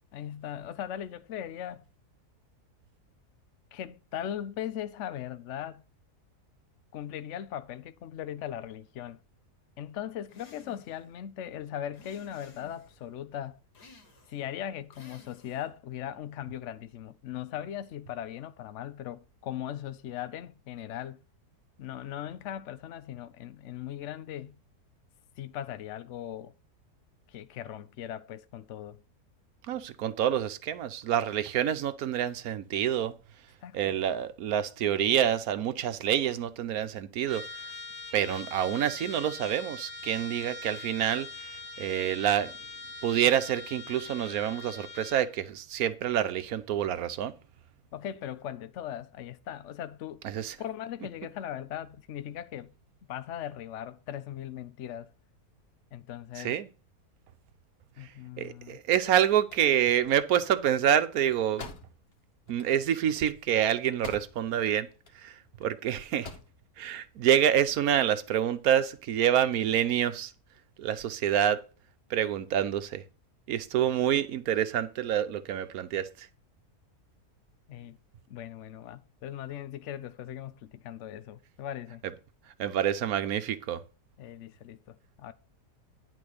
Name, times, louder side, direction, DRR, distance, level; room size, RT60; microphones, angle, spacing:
voice 1, 0.1-1.8 3.7-5.8 6.9-9.2 9.8-13.6 14.3-21.2 21.8-24.6 25.4-26.5 27.3-29.0 33.6-34.0 47.9-50.2 50.6-52.7 53.1-55.1 55.9-56.6 58.0-58.8 77.7-78.0 78.3-82.0 84.2-85.3, left 10 dB, 65° left, 0.8 m, -39 dB
sound 1, 10.3-11.0 11.9-13.0 13.7-14.5 14.9-15.7, left 3 dB, 85° left, 2.2 m, -55 dB
voice 2, 29.7-33.1 33.7-37.4 38.1-41.3 41.8-42.5 43.0-47.3 50.2-50.6 56.4-56.7 58.0-58.1 58.4-61.7 62.5-64.9 65.2-65.3 65.6-66.3 66.8-70.3 70.8-71.6 72.1-73.0 73.5-76.3 82.6-83.8, right 10 dB, 70° right, 1.2 m, -27 dB
Trumpet, 37.3-45.3, left 2 dB, 25° right, 2.0 m, -43 dB
sound 2, 59.3-64.7 64.9-65.7 66.0-66.6, left 3 dB, 40° left, 1.3 m, -47 dB
10.5 x 4.2 x 6.4 m
omnidirectional pair, 1.7 m